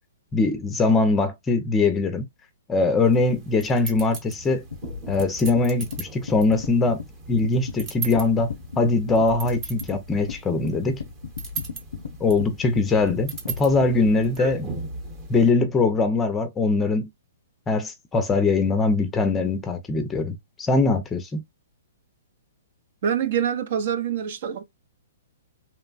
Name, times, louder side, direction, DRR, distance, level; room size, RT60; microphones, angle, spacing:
voice 1, 0.3-2.2 2.7-4.6 5.1-7.0 7.3-8.5 8.8-11.0 12.2-14.7 15.3-17.1 17.7-21.4, left 3 dB, 15° left, 0.5 m, -22 dB
sound 1, 3.0-15.5, right 4 dB, 30° right, 0.9 m, -39 dB
sound 2, 4.7-14.2, left 6 dB, 80° left, 0.5 m, -36 dB
voice 2, 23.0-24.6, right 8 dB, 55° right, 0.5 m, -25 dB
3.0 x 2.1 x 2.4 m
hypercardioid pair, 150°, 0 cm